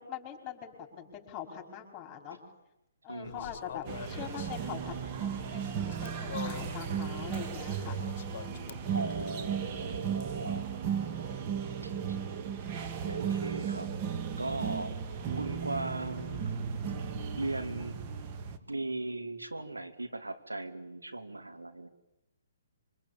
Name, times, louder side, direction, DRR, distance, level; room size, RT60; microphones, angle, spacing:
voice 1, 0.0-2.4 3.0-8.0, left 9 dB, 20° left, 5.6 m, -43 dB
voice 2, 3.1-3.5 8.9-10.7 11.8-12.2 13.0-13.9 14.4-15.0 15.3-16.7 17.4-18.0 18.7-21.9, right 2 dB, 90° right, 3.0 m, -38 dB
sound 1, 3.2-9.3, left 9 dB, 45° left, 1.4 m, -46 dB
sound 2, 3.8-18.6, right 7 dB, 30° right, 2.1 m, -35 dB
26.5 x 24.5 x 9.0 m
figure-of-eight pair, 135°, 0 cm